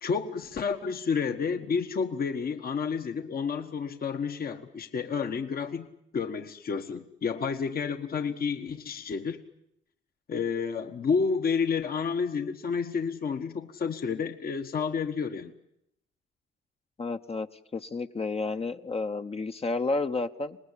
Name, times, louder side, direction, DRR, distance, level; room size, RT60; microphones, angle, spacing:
voice 1, 0.0-5.9 6.1-9.4 10.3-15.5, left 5 dB, 50° left, 7 dB, 1.4 m, -30 dB
voice 2, 17.0-17.5 17.7-20.6, left 3 dB, 30° left, 7 dB, 0.9 m, -31 dB
26.0 x 19.5 x 9.9 m, 0.80 s
cardioid pair, 90°, 20 cm